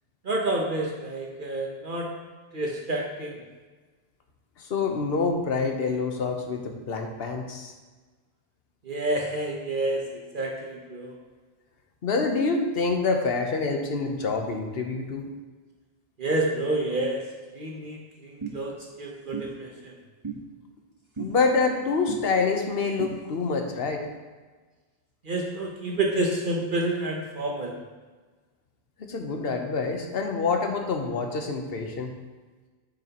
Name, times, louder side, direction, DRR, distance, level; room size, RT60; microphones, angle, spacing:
voice 1, 0.2-2.1 2.5-3.4 8.8-11.2 16.2-17.2 17.5-18.7 19.0-19.9 25.2-27.7, right 2 dB, 55° right, -1 dB, 1.1 m, -29 dB
voice 2, 4.6-7.7 12.0-15.3 21.2-24.1 29.0-32.1, left 4 dB, 70° left, 4 dB, 1.1 m, -26 dB
sound 1, 18.4-18.6 19.3-19.5 20.2-20.4 21.2-21.3 22.1-22.2 23.0-23.1, right 6 dB, 25° right, 1.3 m, -33 dB
9.1 x 7.2 x 2.9 m, 1.3 s
omnidirectional pair, 1.1 m